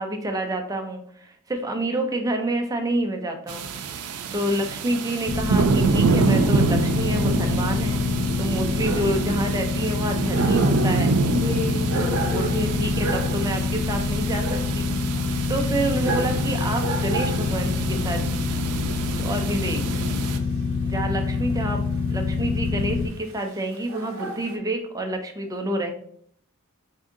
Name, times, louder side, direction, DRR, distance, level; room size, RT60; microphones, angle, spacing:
voice 1, 0.0-3.7 3.9-11.2 11.9-15.0 15.5-18.3 19.2-20.0 20.8-21.8 22.1-25.9, right 1 dB, 15° right, 4 dB, 0.5 m, -28 dB
sound 1, 3.5-20.4, right 4 dB, 85° right, 0.4 m, -27 dB
sound 2, 5.3-23.1, left 4 dB, 45° left, 0.4 m, -26 dB
Dog, 8.5-24.5, right 3 dB, 65° right, 0.8 m, -34 dB
voice 2, 11.3-13.0, left 2 dB, 20° left, -5 dB, 1.2 m, -33 dB
3.5 x 2.7 x 3.6 m, 0.65 s
head